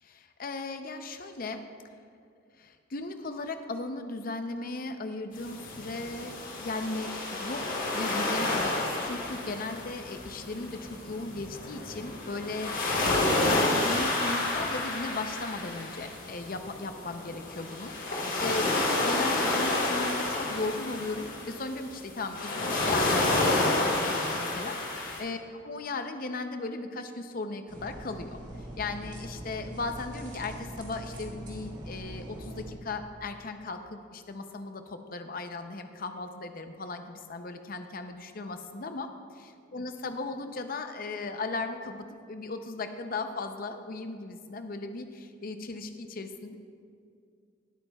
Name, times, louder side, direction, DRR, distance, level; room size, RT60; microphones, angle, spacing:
voice 1, 0.0-1.6 2.6-6.3 6.6-24.8 25.2-25.4 25.6-39.1 39.7-46.6, left 3 dB, 45° left, 7 dB, 0.6 m, -37 dB
sound 1, 5.3-25.2, left 2 dB, 65° left, 2.8 m, -30 dB
sound 2, 27.7-32.7, right 1 dB, 35° right, 2.0 m, -42 dB
19.5 x 8.6 x 2.3 m, 2.4 s
head